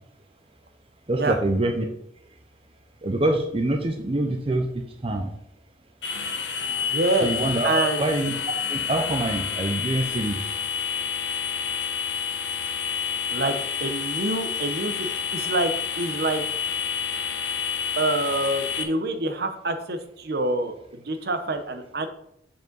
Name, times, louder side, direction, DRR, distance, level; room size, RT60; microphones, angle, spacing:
voice 1, 1.1-1.8 3.0-4.7 5.0-5.3 7.2-7.7 8.0-8.3 8.7-10.4, right 1 dB, 30° right, 4 dB, 0.6 m, -25 dB
sound 1, 6.0-18.8, left 7 dB, 80° left, 0.9 m, -29 dB
voice 2, 6.7-7.3 7.6-8.0 13.3-15.1 15.3-16.4 18.0-22.1, right 2 dB, 60° right, 8 dB, 0.8 m, -26 dB
7.1 x 5.4 x 3.9 m, 0.73 s
head